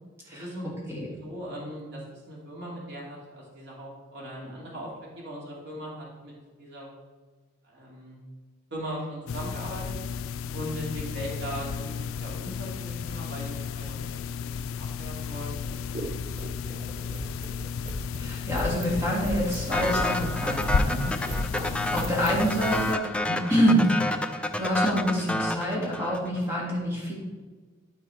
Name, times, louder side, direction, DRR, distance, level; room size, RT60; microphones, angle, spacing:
voice 1, 0.3-0.6 1.2-6.3 6.6-6.9 7.6-8.2 8.7-9.9 10.5-15.7 16.0-17.1 21.2-21.3, equal, 60° right, -4 dB, 2.5 m, -39 dB
voice 2, 0.9-1.2 18.1-27.1, equal, 15° right, -5 dB, 2.7 m, -27 dB
sound 1, 9.3-23.0, left 6 dB, 90° left, 0.3 m, -33 dB
sound 2, 15.6-22.5, right 1 dB, 30° right, 0.7 m, -37 dB
sound 3, 19.7-26.4, left 1 dB, 5° left, 0.4 m, -29 dB
13.0 x 4.7 x 4.4 m, 1.4 s
head